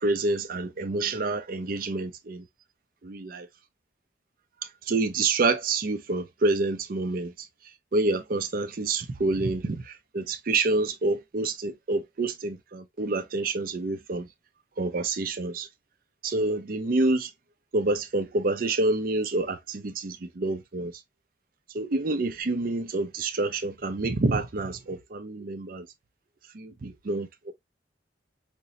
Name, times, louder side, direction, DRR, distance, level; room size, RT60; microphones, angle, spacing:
voice 1, 0.0-2.4 3.0-3.5 4.9-7.5 7.9-14.3 14.8-15.7 16.2-17.3 17.7-20.9 21.7-25.9 26.5-27.5, right 2 dB, 50° right, 0.5 m, -28 dB
5.2 x 2.0 x 2.5 m
head